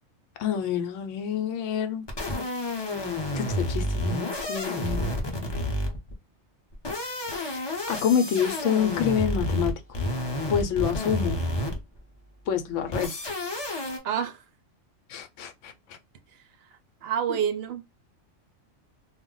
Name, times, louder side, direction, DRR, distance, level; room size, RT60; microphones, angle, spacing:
voice 1, 0.4-2.1 3.3-5.2 7.3-10.0 10.5-11.4 12.5-13.3 15.1-16.0, left 8 dB, 75° left, 0.9 m, -28 dB
sound 1, 2.1-6.1 6.7-12.0 12.9-14.0, left 1 dB, 30° left, 0.5 m, -30 dB
voice 2, 14.0-14.4 17.0-17.8, right 8 dB, 65° right, 0.7 m, -27 dB
2.3 x 2.1 x 3.7 m
omnidirectional pair, 1.3 m